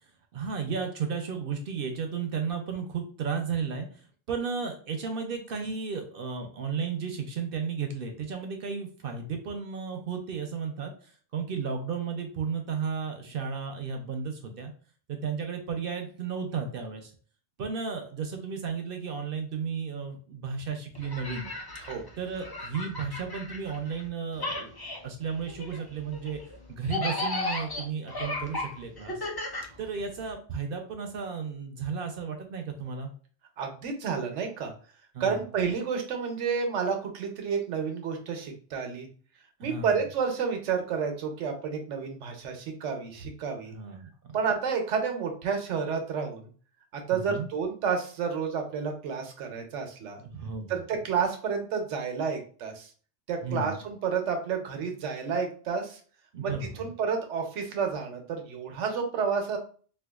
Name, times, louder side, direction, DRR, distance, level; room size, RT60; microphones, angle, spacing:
voice 1, 0.3-14.7 15.1-17.1 17.6-21.5 22.2-24.7 25.0-26.4 26.7-29.3 29.8-33.1 35.1-35.5 39.6-40.0 43.7-44.4 47.1-47.5 50.2-50.8 53.4-53.8 56.3-56.8, right 5 dB, 60° right, 4 dB, 0.7 m, -34 dB
sound 1, 20.9-24.1 24.3-30.3, left 2 dB, 35° left, 0.4 m, -35 dB
voice 2, 33.6-34.7 35.2-39.1 39.6-43.7 44.3-46.5 46.9-50.2 50.7-52.9 53.3-56.0 56.4-56.5 56.8-59.6, right 6 dB, 85° right, 4 dB, 1.0 m, -30 dB
4.3 x 2.3 x 2.3 m, 0.42 s
omnidirectional pair, 1.2 m